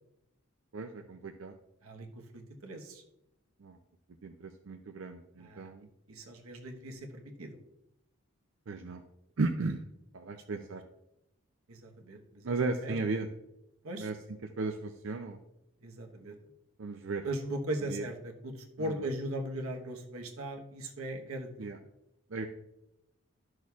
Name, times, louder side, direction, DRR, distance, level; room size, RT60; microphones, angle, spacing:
voice 1, 0.7-1.5 3.6-3.8 4.2-5.9 8.7-9.0 9.4-9.8 10.1-10.8 12.4-13.3 14.0-14.2 14.6-15.4 16.8-17.2 17.9-18.1 18.8-18.9 21.6-21.8 22.3-22.5, right 3 dB, 70° right, 5 dB, 0.5 m, -35 dB
voice 2, 1.8-3.0 5.4-5.7 6.1-7.6 10.3-10.7 11.7-12.6 12.8-13.0 13.8-14.1 15.8-16.4 17.2-21.7, right 1 dB, 90° right, 3 dB, 1.2 m, -39 dB
12.5 x 6.3 x 2.4 m, 0.87 s
head